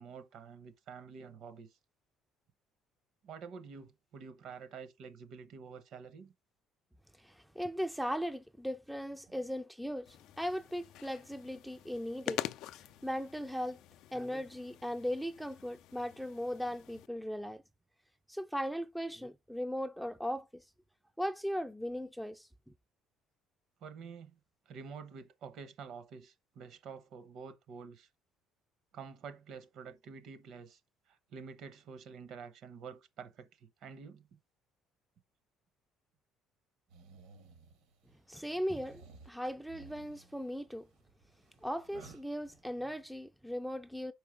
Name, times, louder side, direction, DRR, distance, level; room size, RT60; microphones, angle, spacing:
voice 1, 0.0-1.7 3.2-6.3 9.3-9.5 23.8-24.4 24.7-28.1 28.9-30.8 31.1-34.4, right 6 dB, 60° right, 0.9 m, -48 dB
voice 2, 7.2-12.4 13.0-13.8 14.1-17.6 18.3-20.6 21.2-22.5 38.3-40.9 41.6-44.1, equal, ahead, 0.4 m, -38 dB
sound 1, 10.0-17.1, left 13 dB, 70° left, 0.3 m, -46 dB
sound 2, 36.9-38.1 38.6-43.0, right 4 dB, 90° right, 1.9 m, -57 dB
5.4 x 4.7 x 5.0 m
cardioid pair, 135°, 0 cm